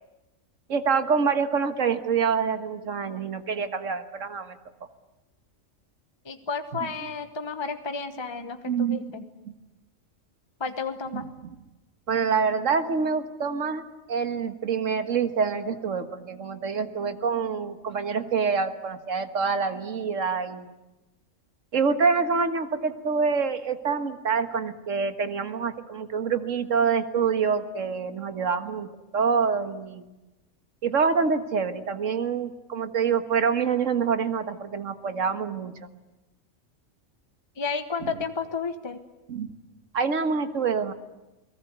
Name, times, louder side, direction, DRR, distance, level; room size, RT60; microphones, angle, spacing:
voice 1, 0.7-4.6 8.7-9.0 9.5-9.6 11.1-11.5 12.1-20.7 21.7-30.1 30.8-35.9 38.0-38.1 39.3-39.5 39.9-40.9, right 5 dB, 70° right, 9 dB, 1.8 m, -26 dB
voice 2, 6.2-9.2 10.6-11.3 37.6-39.0, left 4 dB, 20° left, 8 dB, 1.1 m, -32 dB
29.0 x 19.0 x 8.1 m, 1.0 s
omnidirectional pair, 1.4 m